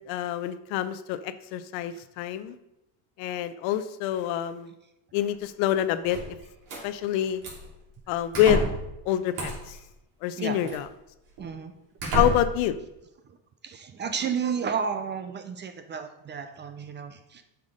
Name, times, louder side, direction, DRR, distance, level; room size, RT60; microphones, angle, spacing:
voice 1, 0.1-2.6 3.2-4.7 5.1-6.4 6.8-7.4 8.1-8.7 9.1-9.8 10.2-10.9 12.1-12.7, left 11 dB, 70° left, 12 dB, 0.8 m, -26 dB
sound 1, 6.0-6.8 7.4-7.7 8.3-8.9 9.3-9.8 10.7-10.8 11.4-11.5 12.0-12.7, right 1 dB, 55° right, 3.3 m, -29 dB
voice 2, 10.4-10.8 11.4-11.7 13.2-13.4 13.6-17.4, right 6 dB, 25° right, 8 dB, 0.4 m, -32 dB
7.5 x 5.9 x 5.0 m, 0.89 s
cardioid pair, 135°, 46 cm